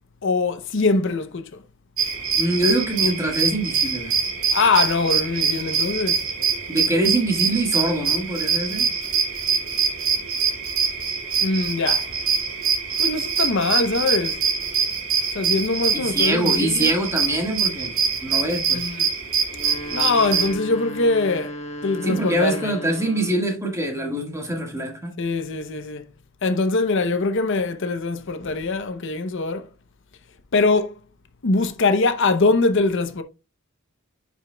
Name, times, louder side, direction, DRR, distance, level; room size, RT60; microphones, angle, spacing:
voice 1, 0.2-1.6 4.5-6.2 11.4-12.0 13.0-14.4 15.3-16.9 18.7-19.1 19.9-21.5 21.8-22.7 25.2-26.0 26.4-29.6 30.5-31.0 31.4-33.2, left 3 dB, 60° left, 0.7 m, -22 dB
sound 1, 2.0-20.5, right 6 dB, 75° right, 2.0 m, -24 dB
voice 2, 2.4-4.1 6.7-8.9 15.9-17.9 18.2-18.8 22.0-25.1, right 1 dB, 15° right, 1.6 m, -24 dB
sound 2, 19.5-23.5, equal, 30° left, 1.1 m, -35 dB
10.0 x 5.1 x 2.2 m
head